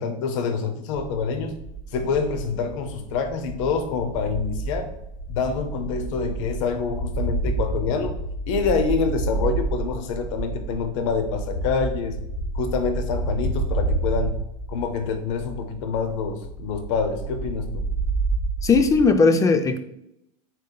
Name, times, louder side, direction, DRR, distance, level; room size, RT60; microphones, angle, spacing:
voice 1, 0.0-1.6 1.9-4.9 5.3-8.1 8.5-12.2 12.5-14.4 14.7-17.9, left 5 dB, 65° left, 7 dB, 0.6 m, -26 dB
sound 1, 1.0-19.2, right 3 dB, 35° left, 1.0 m, -30 dB
voice 2, 18.6-19.8, left 4 dB, 20° left, 9 dB, 0.3 m, -17 dB
3.9 x 3.6 x 2.2 m, 0.81 s
hypercardioid pair, 100°, 17 cm